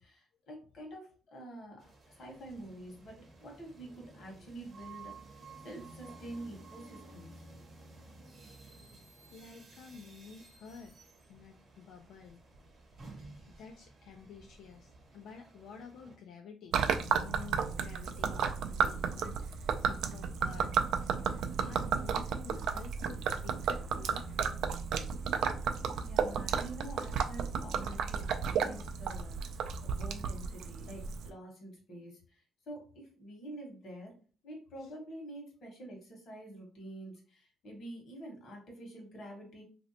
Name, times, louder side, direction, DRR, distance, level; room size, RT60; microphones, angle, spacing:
voice 1, 0.0-7.3 26.0-32.4 32.7-34.1 34.4-39.6, right 1 dB, 50° left, 0 dB, 1.2 m, -47 dB
sound 1, 1.8-16.2, right 3 dB, 25° right, 0.7 m, -54 dB
voice 2, 9.3-10.9 11.3-12.4 13.0-13.3 13.6-20.7 21.0-24.6 26.5-26.6 34.8-34.9, left 5 dB, 80° left, 3 dB, 0.4 m, -51 dB
Gurgling / Liquid, 16.7-31.3, right 6 dB, 75° right, 0.3 m, -33 dB
3.1 x 2.6 x 2.8 m, 0.39 s
cardioid pair, 165°, 0 cm